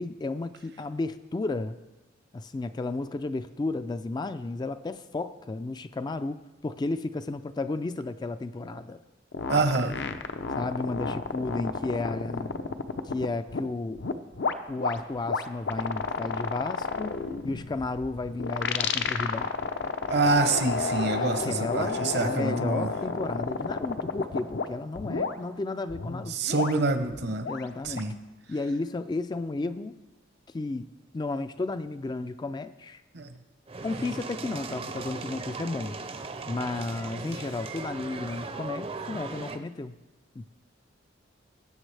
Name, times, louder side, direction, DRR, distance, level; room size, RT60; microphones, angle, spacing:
voice 1, 0.0-1.8 2.3-9.0 10.6-12.5 13.0-14.0 14.7-17.1 17.4-19.5 21.2-26.4 27.5-28.1 28.5-30.0 30.5-30.9 31.1-33.0 33.8-36.0 36.5-40.0 40.4-40.5, left 3 dB, 20° left, 11 dB, 0.3 m, -33 dB
sound 1, 9.3-13.6 14.0-24.7 25.0-25.3 25.9-28.1, left 4 dB, 65° left, 0.6 m, -31 dB
voice 2, 9.5-10.0 20.1-22.9 26.3-27.5 27.8-28.2 33.1-33.3, right 3 dB, 60° right, 8 dB, 0.8 m, -26 dB
sound 2, 33.7-39.6, right 3 dB, 30° right, 0.6 m, -38 dB
17.5 x 7.4 x 3.3 m, 1.0 s
head